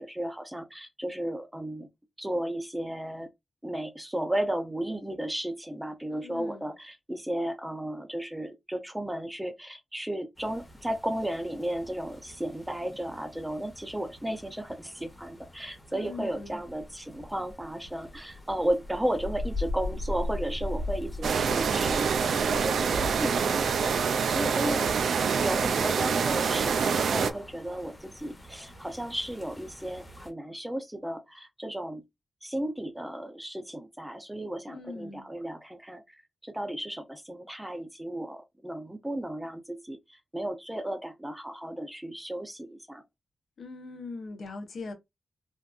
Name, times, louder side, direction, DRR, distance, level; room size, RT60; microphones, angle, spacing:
voice 1, 0.0-1.9 2.2-3.3 3.6-23.3 23.6-24.9 25.3-32.0 32.4-36.2 36.4-43.0, right 1 dB, 5° right, 0.5 m, -34 dB
voice 2, 6.1-6.7 15.9-16.6 24.5-25.0 34.7-35.3 43.6-44.9, left 3 dB, 65° left, 0.8 m, -41 dB
sound 1, 10.4-30.3, left 1 dB, 15° left, 0.9 m, -41 dB
sound 2, 21.2-27.3, right 6 dB, 85° right, 0.3 m, -26 dB
3.5 x 2.5 x 2.3 m
wide cardioid pair, 155°, 0 cm